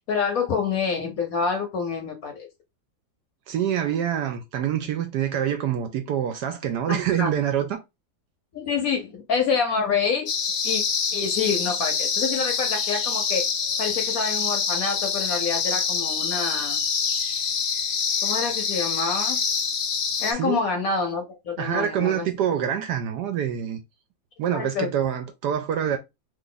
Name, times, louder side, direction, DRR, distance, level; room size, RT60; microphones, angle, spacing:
voice 1, 0.1-2.5 6.9-7.3 8.5-10.3 10.6-10.8 11.1-13.5 13.8-16.8 18.2-19.4 20.2-22.3 24.5-24.9, left 5 dB, 60° left, 1.0 m, -27 dB
voice 2, 3.5-7.8 20.3-20.6 21.6-23.8 24.4-26.0, right 9 dB, 70° right, 1.0 m, -26 dB
sound 1, 10.3-20.3, left 6 dB, 80° left, 0.6 m, -26 dB
3.0 x 2.5 x 3.8 m
omnidirectional pair, 2.0 m